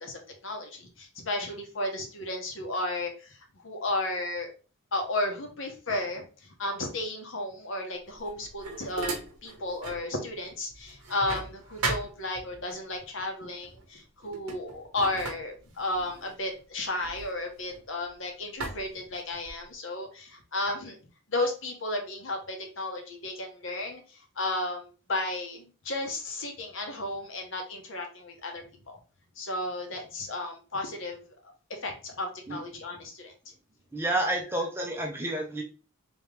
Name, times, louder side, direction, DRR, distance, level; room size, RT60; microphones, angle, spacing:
voice 1, 0.0-4.5 4.9-21.0 21.3-29.0 29.4-31.2 31.7-33.3, left 2 dB, 60° left, 3 dB, 0.9 m, -33 dB
sound 1, 8.1-10.1 10.4-12.8 13.6-13.9 14.2-18.1 18.6-19.7, right 3 dB, 80° right, 0.9 m, -38 dB
voice 2, 33.9-35.6, right 1 dB, 10° right, 1 dB, 0.5 m, -29 dB
3.6 x 3.0 x 3.3 m, 0.35 s
head